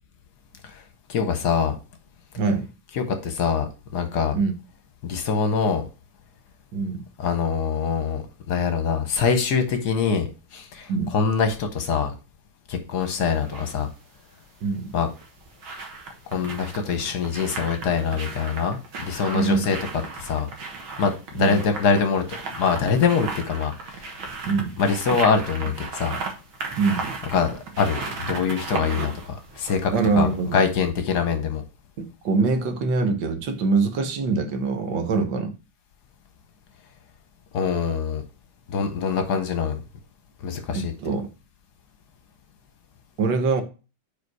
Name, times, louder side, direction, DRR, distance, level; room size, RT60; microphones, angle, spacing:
voice 1, 1.1-1.8 3.0-4.3 5.0-5.8 7.2-10.3 10.5-12.1 12.7-13.9 14.9-15.1 16.3-19.8 20.2-20.5 21.0-23.7 24.0-24.1 24.8-26.2 27.3-31.6 37.5-38.2 38.7-39.8 40.4-40.9, left 6 dB, 60° left, 7 dB, 1.3 m, -24 dB
voice 2, 6.7-7.0 10.9-11.1 14.6-14.9 19.3-19.7 21.3-21.6 24.4-24.7 26.8-27.1 29.9-30.6 32.0-35.5 40.7-41.3 43.2-43.6, right 4 dB, 70° right, 7 dB, 1.7 m, -24 dB
sound 1, 13.0-13.7 15.0-30.5 30.8-30.9, right 4 dB, 85° right, 2.2 m, -35 dB
5.0 x 4.7 x 4.6 m, 0.32 s
omnidirectional pair, 2.2 m